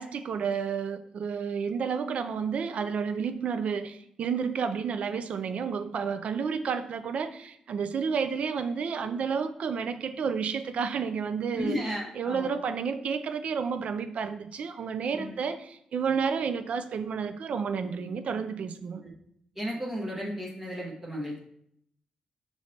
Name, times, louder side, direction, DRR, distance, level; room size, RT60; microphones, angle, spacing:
voice 1, 0.0-11.9 12.1-19.0, right 6 dB, 65° right, 9 dB, 0.3 m, -31 dB
voice 2, 11.5-12.5 15.1-15.3 18.9-19.1 19.6-21.4, equal, 15° right, -3 dB, 0.8 m, -34 dB
5.0 x 3.1 x 2.7 m, 0.72 s
cardioid pair, 90°, 2 cm